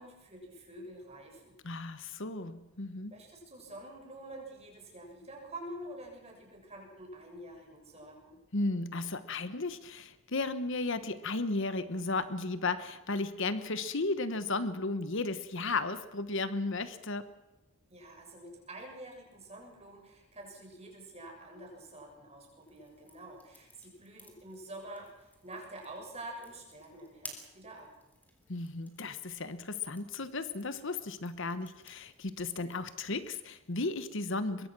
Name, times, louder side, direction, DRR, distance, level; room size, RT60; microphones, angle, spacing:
voice 1, 0.0-1.6 3.1-8.4 17.9-27.9, right 1 dB, 30° right, 0 dB, 6.9 m, -47 dB
voice 2, 1.6-3.1 8.5-17.3 28.5-34.7, left 3 dB, 55° left, 12 dB, 1.1 m, -34 dB
sound 1, 22.6-34.1, left 1 dB, 10° left, 3.5 m, -56 dB
24.5 x 22.5 x 6.1 m, 0.99 s
head